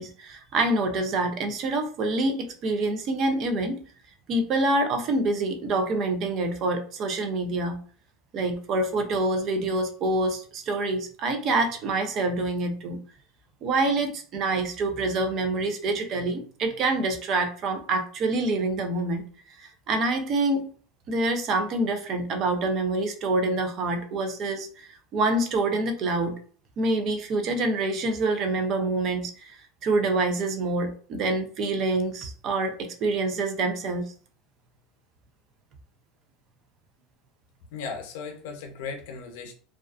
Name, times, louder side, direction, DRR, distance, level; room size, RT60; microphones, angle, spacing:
voice 1, 0.0-3.8 4.3-7.8 8.3-13.0 13.6-19.2 19.6-20.7 21.1-26.4 26.8-34.1, right 2 dB, 40° right, 7 dB, 0.4 m, -26 dB
voice 2, 37.7-39.5, left 5 dB, 80° left, 3 dB, 0.6 m, -36 dB
2.3 x 2.3 x 2.3 m, 0.43 s
supercardioid pair, 150°, 0 cm